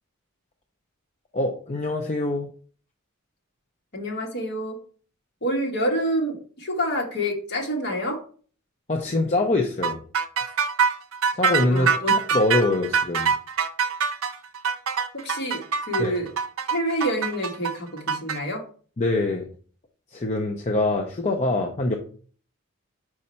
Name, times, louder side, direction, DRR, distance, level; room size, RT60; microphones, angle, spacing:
voice 1, 1.3-2.5 8.9-10.0 11.3-11.9 12.3-13.3 16.0-16.2 19.0-19.5 20.1-22.0, left 2 dB, 30° left, 2 dB, 0.6 m, -24 dB
voice 2, 3.9-4.7 5.4-8.2 11.7-12.1 15.1-16.3 16.7-18.6, equal, 50° left, 1 dB, 1.5 m, -27 dB
sound 1, 9.8-18.4, right 6 dB, 70° right, 0.6 m, -24 dB
5.2 x 4.9 x 4.3 m, 0.43 s
head